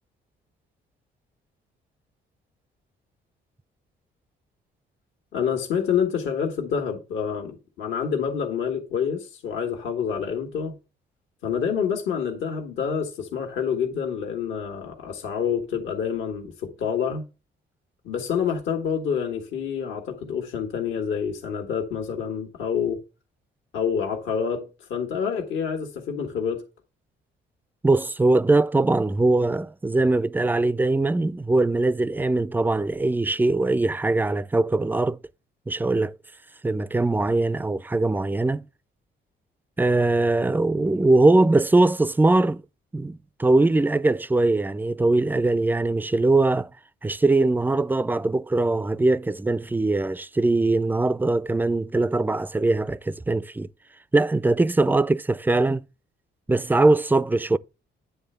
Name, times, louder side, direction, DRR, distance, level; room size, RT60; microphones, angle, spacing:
voice 1, 5.3-10.7 11.4-17.2 18.0-23.0 23.7-26.6, left 7 dB, 80° left, 1.6 m, -27 dB
voice 2, 27.8-35.2 35.7-36.2 36.6-38.6 39.8-42.6 42.9-46.7 47.0-53.7 54.1-55.8 56.5-57.6, right 2 dB, 10° right, 0.3 m, -21 dB
9.6 x 3.4 x 6.7 m
cardioid pair, 90°, 20 cm